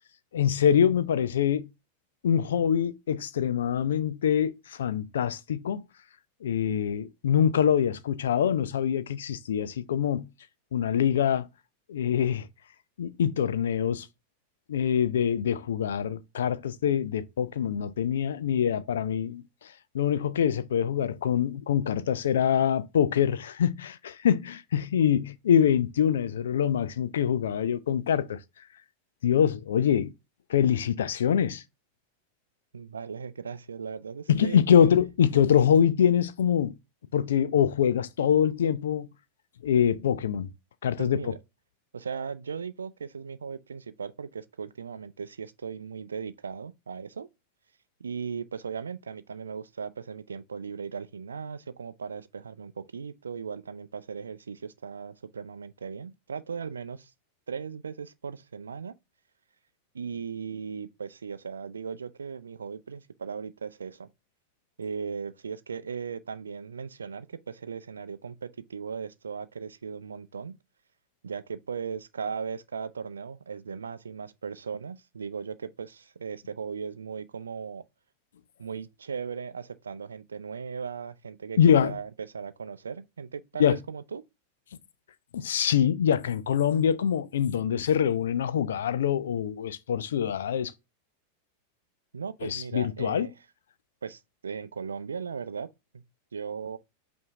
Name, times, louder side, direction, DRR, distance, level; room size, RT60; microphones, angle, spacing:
voice 1, 0.3-1.7 2.2-5.8 6.4-10.3 10.7-11.5 11.9-12.5 13.0-14.1 14.7-19.4 19.9-28.4 29.2-30.1 30.5-31.6 34.3-36.8 37.1-39.1 39.6-40.5 40.8-41.3 81.6-81.9 83.6-83.8 85.3-90.7 92.4-93.3, left 8 dB, 60° left, 0.4 m, -24 dB
voice 2, 32.7-34.6 41.0-41.4 41.9-47.3 48.0-57.1 57.5-58.9 59.9-64.1 64.8-70.5 71.2-77.8 78.6-84.2 92.1-93.3 94.0-95.7 95.9-96.0 96.3-96.8, right 6 dB, 70° right, 0.4 m, -37 dB
5.5 x 2.7 x 3.3 m
figure-of-eight pair, 90°, 0 cm